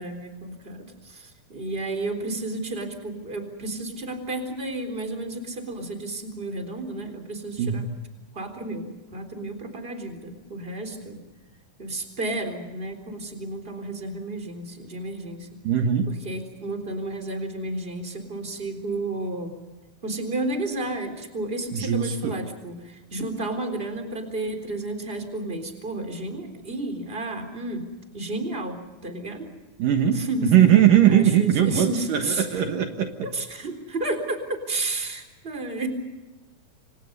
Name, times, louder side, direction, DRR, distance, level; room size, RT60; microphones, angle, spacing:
voice 1, 0.0-7.9 8.3-11.2 11.8-15.6 16.1-19.5 20.0-27.8 28.1-29.5 30.1-30.5 31.0-32.6 33.3-35.9, right 2 dB, 15° right, 4 dB, 3.6 m, -32 dB
voice 2, 15.6-16.1 21.7-22.4 29.8-33.1, right 10 dB, 70° right, 5 dB, 3.0 m, -20 dB
29.5 x 26.0 x 5.4 m, 1.1 s
omnidirectional pair, 4.2 m